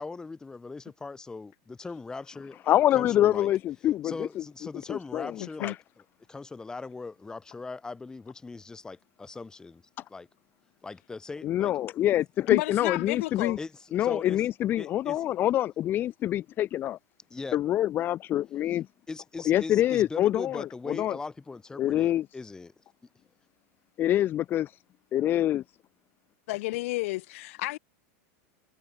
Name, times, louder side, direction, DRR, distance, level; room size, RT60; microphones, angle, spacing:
voice 1, 0.0-2.7 2.9-3.5 4.0-5.8 6.3-9.8 10.1-10.3 10.8-11.7 13.6-14.4 14.8-15.2 17.3-17.6 19.1-22.7, left 3 dB, 10° left, 1.5 m, -40 dB
voice 2, 2.7-4.4 4.9-5.7 11.4-13.6 13.9-17.0 17.5-18.9 19.5-21.2 21.8-22.3 24.0-24.8 25.1-25.6, left 12 dB, 25° left, 0.5 m, -26 dB
voice 3, 5.4-5.7 12.5-13.6 26.5-27.8, left 20 dB, 55° left, 0.8 m, -31 dB
supercardioid pair, 160°, 8 cm